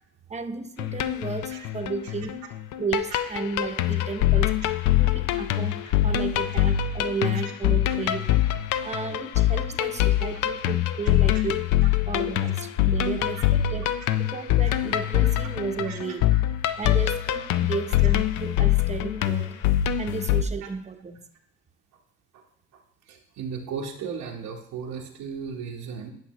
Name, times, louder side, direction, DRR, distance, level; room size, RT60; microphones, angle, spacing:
voice 1, 0.3-2.4 2.8-4.5 5.0-8.4 8.8-11.6 12.1-13.9 14.2-16.3 16.8-19.6 20.0-21.3, right 5 dB, 25° right, 7 dB, 0.8 m, -33 dB
sound 1, 0.8-20.4, left 13 dB, 90° left, 0.5 m, -24 dB
voice 2, 23.1-26.1, right 6 dB, 90° right, -1 dB, 1.0 m, -36 dB
10.5 x 5.9 x 3.0 m, 0.75 s
cardioid pair, 90°, 30 cm